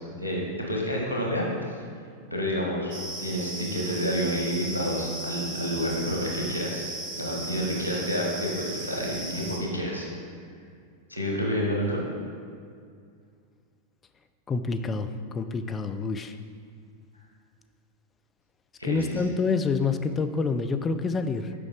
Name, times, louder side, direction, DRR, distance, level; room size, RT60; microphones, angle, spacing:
voice 1, 0.2-1.8 2.3-2.9 3.2-6.8 7.1-10.1 11.1-12.0 18.8-19.1, equal, 90° right, -2 dB, 1.4 m, -29 dB
sound 1, 2.9-9.6, right 2 dB, 40° right, 1.4 m, -37 dB
voice 2, 14.5-16.4 18.8-21.5, left 4 dB, 20° left, 8 dB, 0.4 m, -27 dB
6.7 x 5.2 x 4.8 m, 2.2 s
figure-of-eight pair, 90°, 0 cm